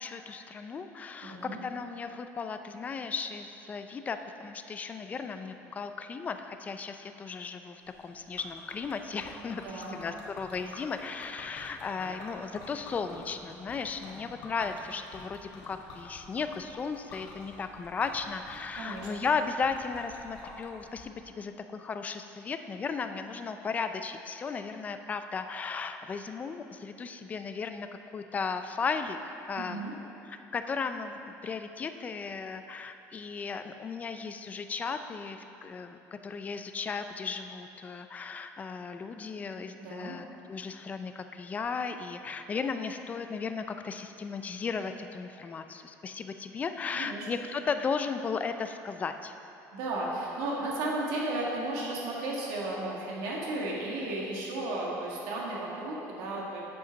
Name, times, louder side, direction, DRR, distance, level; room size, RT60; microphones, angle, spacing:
voice 1, 0.0-27.9 28.1-29.9 30.3-49.3, left 5 dB, 20° left, 8 dB, 0.4 m, -35 dB
voice 2, 1.2-1.6 9.6-10.0 18.8-19.1 29.6-29.9 39.8-40.1 46.9-47.3 49.7-56.6, right 2 dB, 90° right, -4 dB, 1.7 m, -34 dB
Liquid, 7.9-21.0, left 3 dB, 80° left, 1.4 m, -48 dB
7.7 x 6.8 x 5.2 m, 2.8 s
cardioid pair, 150°, 7 cm